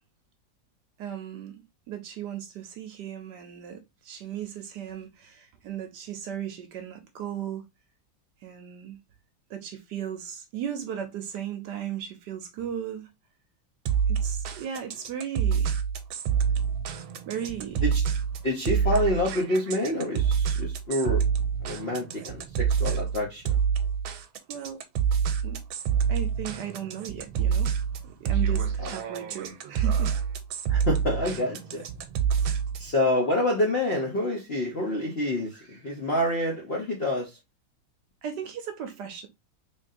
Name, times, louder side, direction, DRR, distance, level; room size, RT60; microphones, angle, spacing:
voice 1, 1.0-7.7 8.4-9.0 9.5-13.1 14.1-15.7 17.3-17.8 24.5-24.8 25.4-25.6 26.1-27.7 28.0-30.2 38.2-39.3, right 9 dB, 70° right, 1.1 m, -36 dB
sound 1, 13.9-32.9, right 7 dB, 90° right, 1.4 m, -27 dB
voice 2, 18.4-21.3 21.6-23.6 28.8-28.9 30.7-31.8 32.8-37.4, left 1 dB, 60° left, 0.6 m, -27 dB
3.6 x 3.4 x 2.5 m
omnidirectional pair, 2.2 m